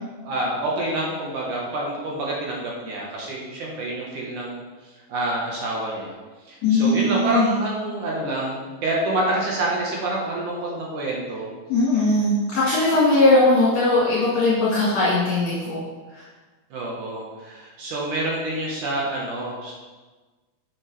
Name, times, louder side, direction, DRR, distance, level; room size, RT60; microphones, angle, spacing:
voice 1, 0.2-4.6 5.1-6.1 6.5-11.5 16.7-19.7, right 1 dB, 65° right, -3 dB, 2.4 m, -27 dB
voice 2, 6.6-7.6 11.7-15.8 16.1-16.2, left 2 dB, 55° left, -8 dB, 2.6 m, -19 dB
8.4 x 7.6 x 3.3 m, 1.3 s
omnidirectional pair, 4.3 m